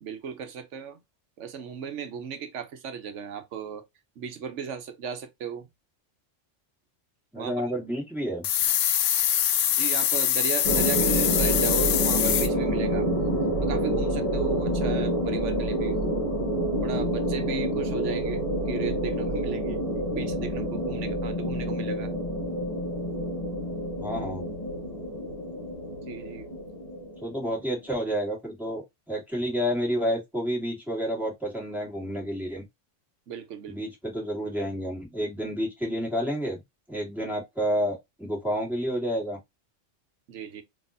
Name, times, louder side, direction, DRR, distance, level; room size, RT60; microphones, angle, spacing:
voice 1, 0.0-1.0 1.4-3.8 4.2-5.7 7.4-7.5 9.8-16.0 16.8-18.4 18.7-19.8 20.1-22.1 26.1-26.5 33.3-33.8 40.3-40.6, right 7 dB, 75° right, 1.1 m, -36 dB
voice 2, 7.3-8.4 15.2-15.3 24.0-24.4 27.2-28.8 29.1-32.6 33.7-36.6 36.9-39.4, equal, ahead, 2.0 m, -30 dB
sound 1, 8.4-12.5, left 11 dB, 85° left, 0.9 m, -24 dB
sound 2, 10.6-27.7, equal, 30° left, 1.1 m, -28 dB
4.1 x 3.1 x 2.5 m
omnidirectional pair, 1.2 m